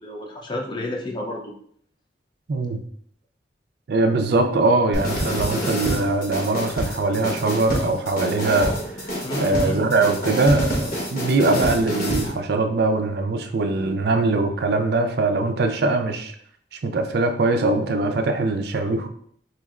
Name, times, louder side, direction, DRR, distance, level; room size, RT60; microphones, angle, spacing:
voice 1, 0.0-1.5 9.2-9.9, left 1 dB, 25° left, 0 dB, 0.5 m, -30 dB
voice 2, 2.5-2.8 3.9-9.1 9.4-16.3 16.7-19.1, right 3 dB, 60° right, 6 dB, 0.4 m, -22 dB
sound 1, 4.9-12.3, equal, 55° left, 1.0 m, -27 dB
4.4 x 3.1 x 2.4 m, 0.62 s
head